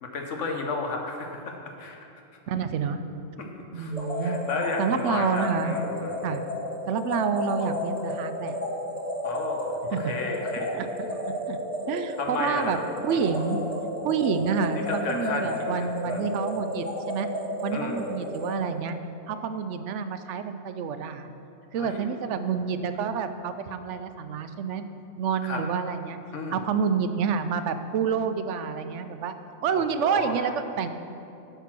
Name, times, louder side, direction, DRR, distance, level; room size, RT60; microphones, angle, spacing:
voice 1, 0.0-2.0 3.4-3.9 4.2-6.2 9.2-10.8 12.2-12.7 13.1-13.2 14.9-16.3 17.7-18.0 21.8-22.1 25.4-25.6 26.3-26.6 29.7-30.5, left 3 dB, 80° left, 2 dB, 1.4 m, -33 dB
voice 2, 2.5-3.0 3.7-4.4 4.8-5.8 6.2-6.4 6.9-8.5 9.9-10.1 10.7-10.9 11.5-11.6 11.9-12.8 13.0-13.6 14.0-17.3 17.6-19.0 19.3-21.3 21.7-24.9 25.2-26.2 26.5-29.3 29.6-30.9, right 6 dB, 75° right, 10 dB, 0.9 m, -28 dB
sound 1, 3.9-18.5, left 1 dB, 30° left, 1.5 m, -32 dB
8.3 x 6.9 x 5.9 m, 2.7 s
omnidirectional pair, 1.3 m